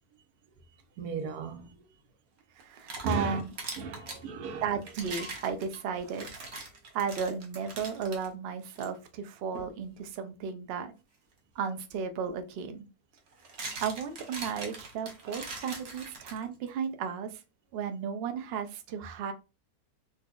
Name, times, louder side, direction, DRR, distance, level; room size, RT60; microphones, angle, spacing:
voice 1, 1.0-1.8 3.0-3.4 3.8-4.7, right 3 dB, 90° right, 1.2 m, -35 dB
sound 1, 2.6-4.2 4.8-8.3 8.7-8.9 9.5-9.8 11.9-12.0 13.2-16.7, right 3 dB, 50° right, 1.0 m, -42 dB
voice 2, 2.6-3.5 4.6-6.3 6.9-10.9 11.6-12.9 13.8-17.4 17.7-19.3, right 6 dB, 70° right, 0.6 m, -34 dB
4.0 x 2.6 x 2.3 m
omnidirectional pair, 1.6 m